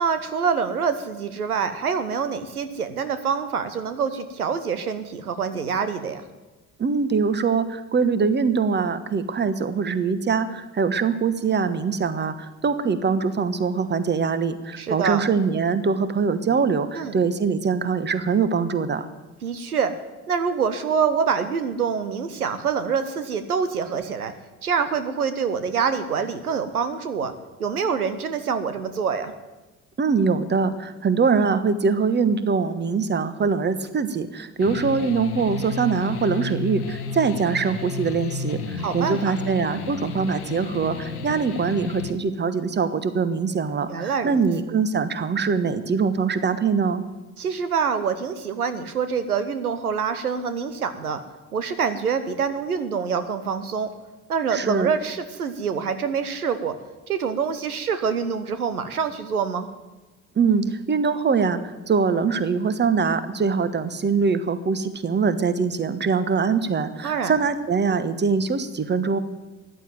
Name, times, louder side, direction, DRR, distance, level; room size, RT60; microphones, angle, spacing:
voice 1, 0.0-6.2 14.8-15.2 16.9-17.1 19.4-19.9 20.3-24.3 24.6-27.3 27.6-29.3 38.8-39.3 43.9-44.4 47.4-51.2 51.5-53.9 54.3-56.7 57.1-59.7 67.0-67.3, right 6 dB, 80° right, 11 dB, 1.0 m, -26 dB
voice 2, 6.8-19.1 30.0-47.0 54.5-54.9 60.3-69.2, right 5 dB, 25° right, 13 dB, 1.3 m, -23 dB
sound 1, 34.6-42.1, left 4 dB, 85° left, 1.1 m, -32 dB
14.5 x 10.5 x 9.2 m, 1.2 s
figure-of-eight pair, 55°, 43 cm